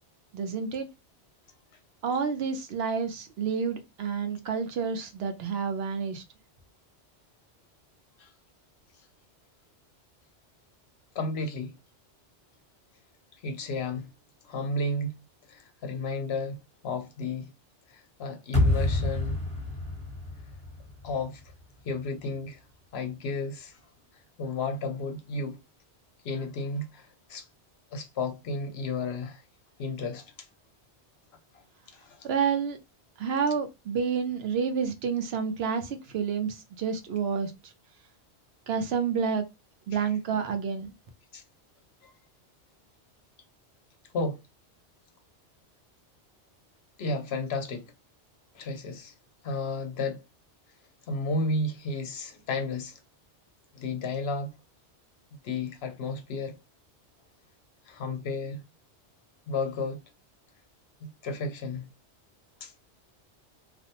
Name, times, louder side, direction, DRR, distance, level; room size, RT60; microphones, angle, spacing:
voice 1, 0.3-0.9 2.0-6.2 32.2-32.8 33.2-37.5 38.7-39.4 39.9-40.9, right 6 dB, 70° right, 0.8 m, -29 dB
voice 2, 11.1-11.7 13.4-14.1 14.4-15.1 15.5-17.5 17.9-19.4 21.0-21.4 21.8-22.6 22.9-23.8 24.4-25.6 26.2-27.5 27.9-29.4 29.8-30.3 31.5-31.6 31.9-32.3 39.9-40.1 41.3-41.4 42.0-42.1 44.1-44.4 47.0-47.9 48.5-49.1 49.4-50.2 51.1-53.0 53.7-54.5 55.4-56.6 57.9-58.6 59.5-60.0 61.0-61.9 62.6-62.7, left 3 dB, 70° left, 0.8 m, -33 dB
sound 1, 18.5-21.6, left 2 dB, 5° left, 0.8 m, -28 dB
2.5 x 2.1 x 2.8 m
omnidirectional pair, 1.1 m